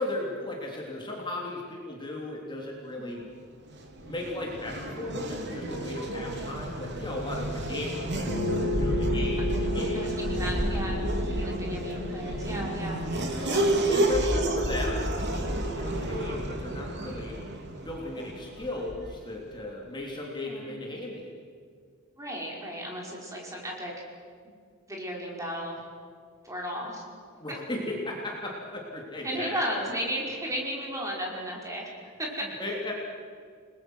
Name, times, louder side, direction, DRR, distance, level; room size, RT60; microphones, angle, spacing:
voice 1, 0.0-3.2 4.0-10.3 13.3-17.4 17.8-21.3 27.4-29.6 32.6-32.9, left 2 dB, 20° left, -2 dB, 3.4 m, -36 dB
Race car auto racing / Accelerating revving vroom, 3.6-19.2, right 1 dB, 55° right, 3.2 m, -31 dB
sound 1, 8.2-13.5, left 1 dB, 75° left, 6.4 m, -33 dB
voice 2, 9.9-13.0 20.5-20.8 22.2-23.9 24.9-25.8 26.4-27.0 27.5-27.6 29.2-31.9 32.2-32.5, equal, 15° right, -2 dB, 5.3 m, -34 dB
30.0 x 21.0 x 6.4 m, 2.1 s
head